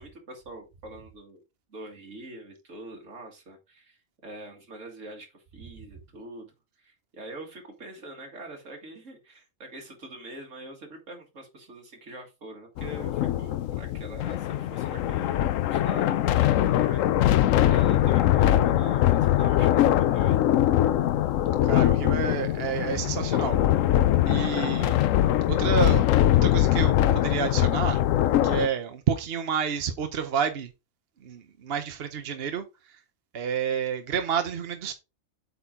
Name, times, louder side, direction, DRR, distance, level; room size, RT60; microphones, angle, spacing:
voice 1, 0.0-1.4 1.7-6.5 6.8-20.4, right 2 dB, 75° right, 2.4 m, -44 dB
sound 1, 12.8-28.7, left 12 dB, 90° left, 1.0 m, -22 dB
voice 2, 21.6-23.6 24.3-25.0 25.5-26.1 26.4-28.0 28.4-30.7 31.2-32.6 33.3-34.9, right 7 dB, 55° right, 1.0 m, -29 dB
8.3 x 4.3 x 3.7 m
omnidirectional pair, 1.3 m